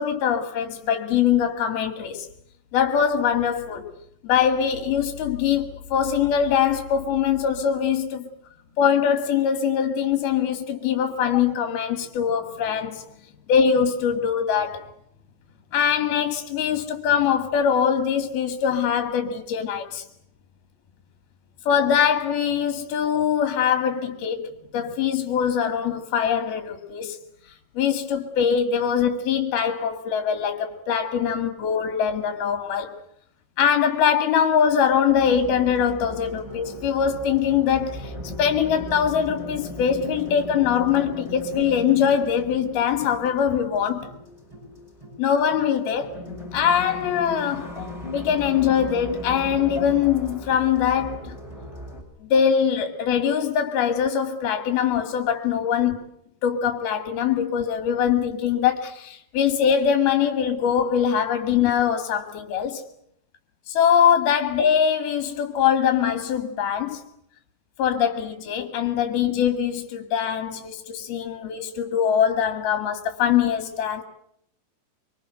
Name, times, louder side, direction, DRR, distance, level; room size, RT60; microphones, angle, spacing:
voice 1, 0.0-2.3 2.7-3.9 4.2-8.3 8.8-13.0 13.5-14.9 15.7-20.0 21.7-27.2 27.8-32.9 33.6-38.1 38.4-44.1 45.2-46.1 46.5-47.7 48.1-51.4 52.2-56.0 56.4-62.8 63.7-67.0 67.8-74.0, left 8 dB, 70° left, 3.8 m, -22 dB
sound 1, 35.1-52.0, left 1 dB, 5° right, 7.2 m, -37 dB
26.0 x 25.5 x 7.8 m
omnidirectional pair, 4.6 m